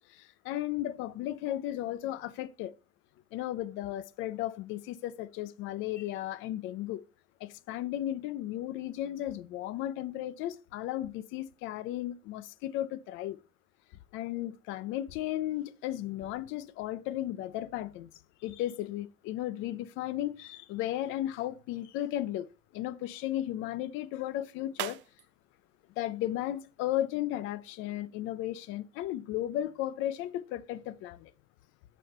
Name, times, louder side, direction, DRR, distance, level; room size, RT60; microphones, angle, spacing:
voice 1, 0.1-2.7 3.3-7.0 7.4-13.4 14.1-18.1 18.4-22.5 22.7-25.0 26.0-31.3, left 13 dB, 70° left, 0.6 m, -35 dB
sound 1, 21.1-27.1, right 16 dB, 60° right, 0.5 m, -48 dB
6.5 x 6.5 x 4.2 m
cardioid pair, 155°, 21 cm